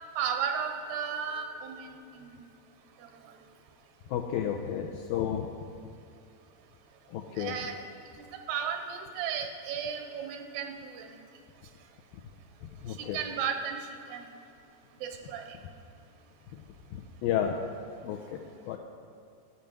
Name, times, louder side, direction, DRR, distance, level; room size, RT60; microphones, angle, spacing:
voice 1, 0.2-2.4 7.4-7.8 8.2-11.1 13.1-13.8 14.1-14.3 15.0-15.4, right 7 dB, 90° right, 4 dB, 2.9 m, -34 dB
voice 2, 4.1-5.5 7.1-7.6 12.8-13.2 16.9-17.6 18.0-18.4 18.7-18.8, left 9 dB, 85° left, 2 dB, 2.1 m, -31 dB
12.5 x 5.5 x 7.6 m, 2.4 s
omnidirectional pair, 4.7 m